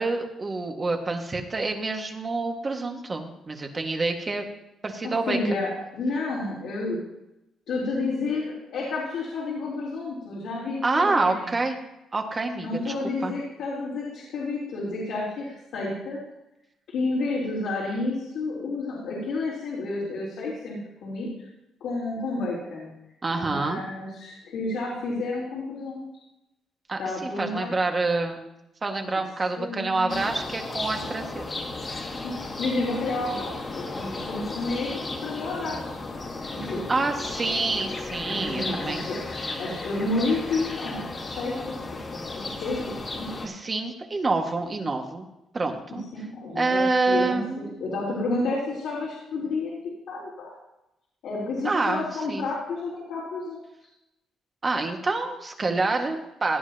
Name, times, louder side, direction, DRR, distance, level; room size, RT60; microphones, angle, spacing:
voice 1, 0.0-4.5 4.8-5.6 10.8-11.8 12.1-12.9 13.2-13.3 23.2-23.8 26.9-28.4 28.8-31.5 36.9-39.0 43.4-45.3 45.5-46.1 46.6-47.9 51.6-52.5 54.6-56.6, right 3 dB, 30° right, 3 dB, 1.8 m, -27 dB
voice 2, 5.0-7.0 7.7-11.4 12.6-16.2 16.9-21.3 21.8-22.9 23.3-26.0 27.0-27.7 29.6-30.3 32.2-36.0 36.4-36.8 38.3-39.2 39.6-41.8 42.1-43.3 45.9-47.4 47.8-49.7 50.1-50.5 51.2-53.7, left 2 dB, 80° left, -7 dB, 3.7 m, -30 dB
sound 1, 30.1-43.5, left 2 dB, 40° left, 2.2 m, -34 dB
17.5 x 9.9 x 2.9 m, 0.90 s
cardioid pair, 90°, 0 cm